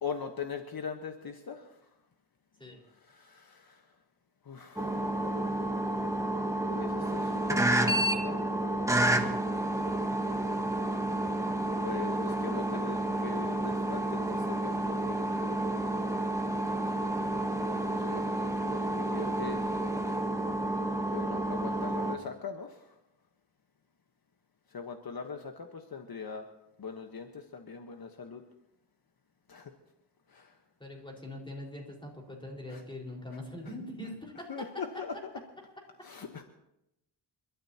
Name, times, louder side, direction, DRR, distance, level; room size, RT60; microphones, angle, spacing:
voice 1, 0.0-1.8 2.9-3.9 4.4-6.2 6.7-8.8 11.8-15.4 15.8-16.1 17.7-19.7 20.1-20.2 21.1-22.9 24.7-26.4 26.8-28.4 29.5-29.7 30.3-30.6 32.7-32.8 33.3-33.4 34.5-35.1 36.0-36.4, left 6 dB, 55° left, 5 dB, 1.3 m, -42 dB
sound 1, 4.8-22.2, right 1 dB, 5° right, 1.4 m, -30 dB
voice 2, 30.8-34.5, left 1 dB, 10° left, -1 dB, 4.7 m, -42 dB
30.0 x 13.0 x 2.9 m, 0.87 s
wide cardioid pair, 95°, 43 cm